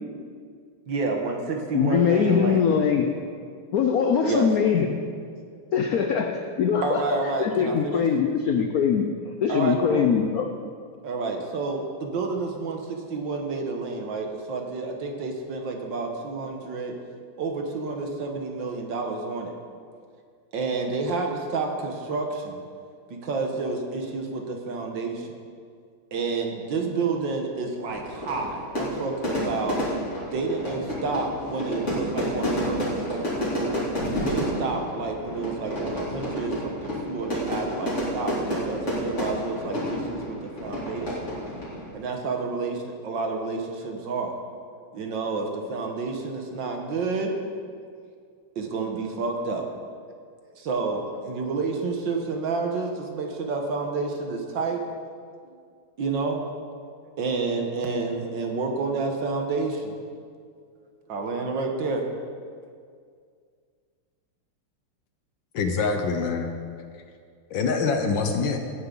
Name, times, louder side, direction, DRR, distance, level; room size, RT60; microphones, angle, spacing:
voice 1, 0.9-2.7 4.3-4.5 6.8-8.1 9.5-10.1 11.0-16.9 17.4-19.5 20.5-22.6 23.1-25.3 26.1-29.8 30.3-33.8 34.2-41.3 41.9-44.3 44.9-47.3 47.8-47.9 48.5-49.7 50.4-54.8 56.0-56.4 57.2-60.0 61.1-62.1, right 4 dB, 60° right, 3 dB, 1.7 m, -29 dB
voice 2, 1.7-3.1 3.7-5.0 5.7-9.1 9.4-10.5, left 7 dB, 80° left, 4 dB, 0.8 m, -22 dB
Fire / Fireworks, 27.9-41.9, equal, 35° left, 2.9 m, -30 dB
voice 3, 65.5-66.5 67.5-68.6, left 4 dB, 65° left, 5 dB, 1.5 m, -24 dB
16.5 x 9.4 x 3.9 m, 2.2 s
omnidirectional pair, 2.4 m